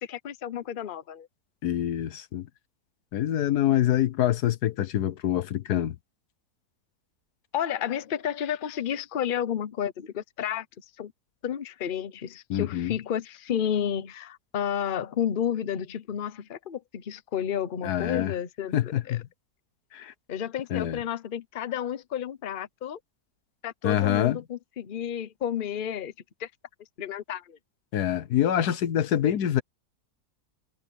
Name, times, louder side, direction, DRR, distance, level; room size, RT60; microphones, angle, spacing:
voice 1, 0.0-1.3 7.5-10.7 11.0-11.1 11.4-19.2 20.3-23.0 23.6-26.1 26.4-26.5 27.0-27.6, left 9 dB, 40° left, 0.9 m, -31 dB
voice 2, 1.6-2.5 3.1-6.0 12.5-12.9 17.8-18.4 18.7-19.2 19.9-20.1 20.7-21.0 23.8-24.4 27.9-29.6, left 11 dB, 85° left, 1.4 m, -25 dB
omnidirectional pair, 1.6 m